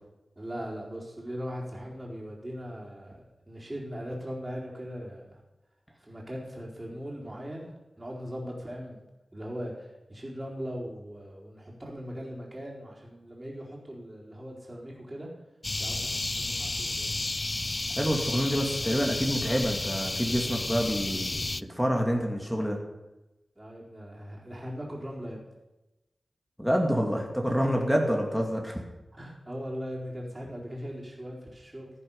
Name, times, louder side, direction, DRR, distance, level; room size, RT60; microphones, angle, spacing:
voice 1, 0.4-5.4 6.0-9.0 9.3-15.3 15.8-17.2 23.6-25.4 29.1-31.9, equal, 20° right, -3 dB, 4.3 m, -39 dB
sound 1, 15.6-21.6, left 2 dB, 40° left, 0.3 m, -32 dB
voice 2, 18.0-22.8 26.6-28.8, equal, ahead, 1 dB, 2.7 m, -27 dB
15.0 x 9.9 x 5.7 m, 1.0 s
wide cardioid pair, 60°, 0 cm